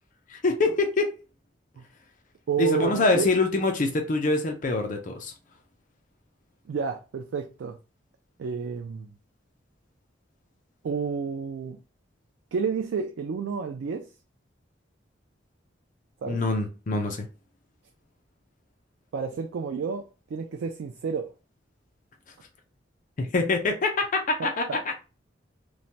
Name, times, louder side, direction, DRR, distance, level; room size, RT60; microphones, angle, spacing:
voice 1, 0.3-1.2 2.6-5.3 16.3-17.3 23.2-24.9, left 3 dB, 45° left, 0.5 m, -25 dB
voice 2, 2.5-3.3 6.7-7.8 8.4-9.1 10.8-11.8 12.5-14.1 16.2-16.4 19.1-20.0 20.3-21.3 24.4-24.8, right 6 dB, 80° right, 0.3 m, -30 dB
3.1 x 2.1 x 2.7 m
head